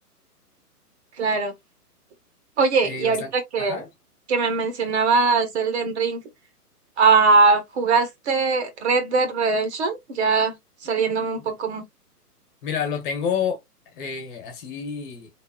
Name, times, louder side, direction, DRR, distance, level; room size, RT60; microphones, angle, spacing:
voice 1, 1.2-1.5 2.6-3.8 4.3-6.2 7.0-10.5 10.8-11.8, right 4 dB, 45° right, 1.1 m, -21 dB
voice 2, 2.8-3.3 3.6-3.9 11.3-11.5 12.6-13.6 13.9-15.3, left 7 dB, 30° left, 1.3 m, -29 dB
3.5 x 2.7 x 2.8 m
figure-of-eight pair, 130°, 47 cm